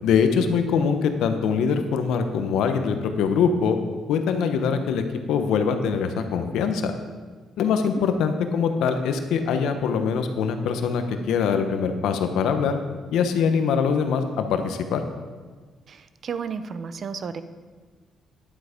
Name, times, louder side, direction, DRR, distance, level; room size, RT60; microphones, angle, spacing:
voice 1, 0.0-3.8 4.1-6.9 7.6-12.8 13.1-15.0, left 6 dB, 85° left, 7 dB, 1.0 m, -23 dB
voice 2, 15.9-17.4, right 6 dB, 50° right, 12 dB, 0.7 m, -33 dB
11.0 x 8.2 x 5.1 m, 1.4 s
cardioid pair, 90°, 0 cm